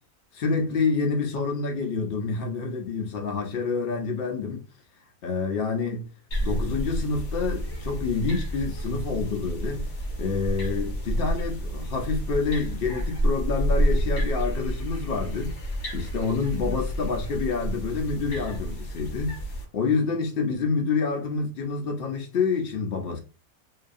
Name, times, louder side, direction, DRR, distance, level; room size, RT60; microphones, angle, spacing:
voice 1, 0.4-4.6 5.2-6.1 6.4-9.9 10.2-19.4 19.7-23.2, left 4 dB, 90° left, 0.5 m, -28 dB
sound 1, 6.3-19.6, equal, 55° left, 0.9 m, -29 dB
2.7 x 2.3 x 2.5 m
omnidirectional pair, 1.6 m